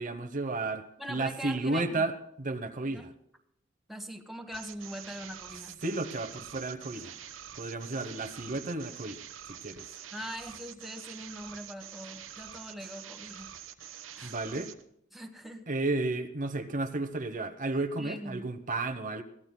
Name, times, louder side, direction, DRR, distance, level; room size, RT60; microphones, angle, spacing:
voice 1, 0.0-3.1 5.8-7.2 7.6-9.2 9.6-9.9 14.2-14.7 15.7-19.2, right 2 dB, 45° right, 7 dB, 0.9 m, -33 dB
voice 2, 1.0-2.1 2.9-3.1 3.9-5.8 10.1-13.5 14.1-14.3 15.1-15.7 18.0-18.4, equal, ahead, 3 dB, 1.3 m, -42 dB
sound 1, 4.5-14.8, right 9 dB, 85° right, 1.2 m, -46 dB
22.5 x 16.0 x 2.2 m, 0.75 s
head